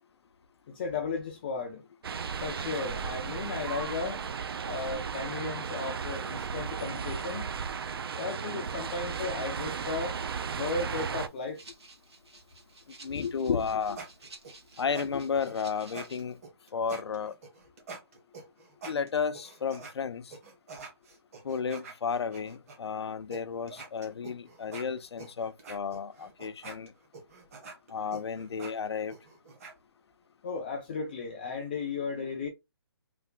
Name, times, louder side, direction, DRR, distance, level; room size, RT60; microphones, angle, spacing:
voice 1, 0.7-1.8 2.4-4.2 4.7-7.5 8.2-10.1 10.5-11.6 30.4-32.5, left 4 dB, 20° left, 0.3 m, -35 dB
sound 1, 2.0-11.3, right 6 dB, 65° right, 0.4 m, -35 dB
Rattle (instrument), 10.9-16.4, right 3 dB, 85° right, 1.5 m, -54 dB
voice 2, 13.0-14.0 14.8-16.4 16.7-17.3 18.9-20.3 21.4-26.9 27.9-29.2, left 6 dB, 85° left, 0.5 m, -32 dB
sound 2, 13.5-19.9 20.3-22.8 23.3-23.4 23.7-29.7, right 4 dB, 35° right, 1.0 m, -46 dB
3.3 x 2.1 x 3.7 m
hypercardioid pair, 160°, 14 cm